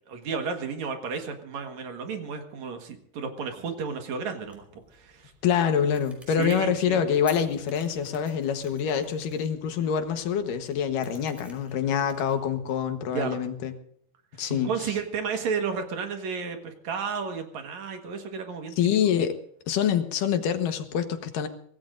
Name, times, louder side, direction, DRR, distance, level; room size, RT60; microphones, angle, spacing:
voice 1, 0.1-5.3 6.4-7.0 13.1-13.4 14.5-18.7, right 5 dB, 65° right, 5 dB, 2.7 m, -32 dB
sound 1, 4.4-12.8, left 1 dB, ahead, 4.5 m, -53 dB
voice 2, 5.4-13.7 14.4-14.7 18.8-19.3 19.7-21.5, left 8 dB, 85° left, 8 dB, 2.9 m, -26 dB
24.0 x 17.5 x 2.6 m, 0.65 s
omnidirectional pair, 3.7 m